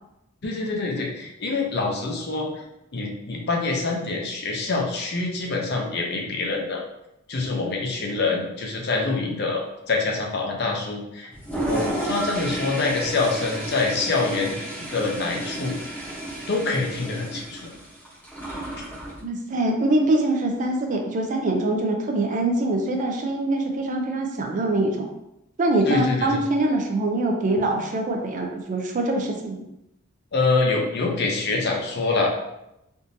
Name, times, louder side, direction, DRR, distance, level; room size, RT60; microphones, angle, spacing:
voice 1, 0.4-2.5 2.9-6.8 7.3-11.3 11.6-14.6 14.9-16.0 16.5-17.6 25.9-26.4 30.3-32.3, left 3 dB, 50° left, 0 dB, 0.6 m, -25 dB
Toilet flush, 11.3-19.2, right 1 dB, 10° left, 0.8 m, -32 dB
voice 2, 19.2-25.1 25.6-29.6, right 2 dB, 40° right, 2 dB, 0.4 m, -24 dB
3.5 x 2.6 x 2.6 m, 0.86 s
head